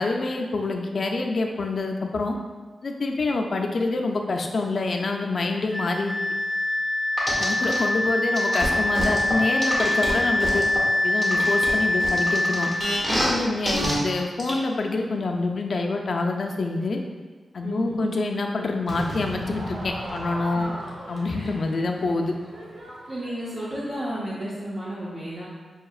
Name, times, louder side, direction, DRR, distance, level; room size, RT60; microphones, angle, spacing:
voice 1, 0.0-2.4 2.8-6.1 7.4-10.6 11.0-12.7 13.1-17.0 17.5-20.7 21.1-22.3, left 3 dB, 55° left, 2 dB, 0.4 m, -26 dB
Wind instrument woodwind instrument, 5.7-12.8, left 2 dB, ahead, 0.7 m, -24 dB
sound 1, 7.2-7.8 8.3-10.8 11.2-13.3 13.7-13.9 14.4-14.5, equal, 20° right, 1.1 m, -27 dB
voice 2, 17.6-18.1 20.5-20.6 21.3-21.5 23.1-25.5, right 1 dB, 45° right, -8 dB, 0.7 m, -32 dB
Crowd / Fireworks, 18.9-24.1, right 1 dB, 75° right, 0.8 m, -37 dB
5.7 x 2.8 x 2.4 m, 1.4 s
wide cardioid pair, 105°, 0 cm